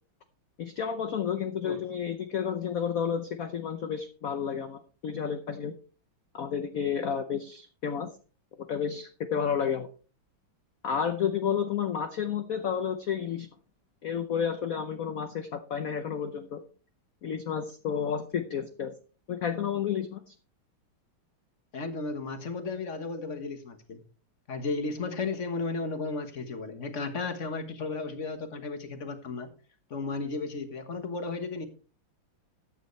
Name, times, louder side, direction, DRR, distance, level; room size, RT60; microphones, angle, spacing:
voice 1, 0.6-5.8 6.3-8.1 8.7-9.9 10.8-13.5 14.0-16.6 17.2-18.9 19.3-20.3, left 7 dB, 55° left, 8 dB, 1.0 m, -31 dB
voice 2, 21.7-24.0 24.5-29.5 29.9-31.7, left 3 dB, 40° left, 8 dB, 1.5 m, -34 dB
13.5 x 9.2 x 3.2 m, 0.38 s
omnidirectional pair, 2.3 m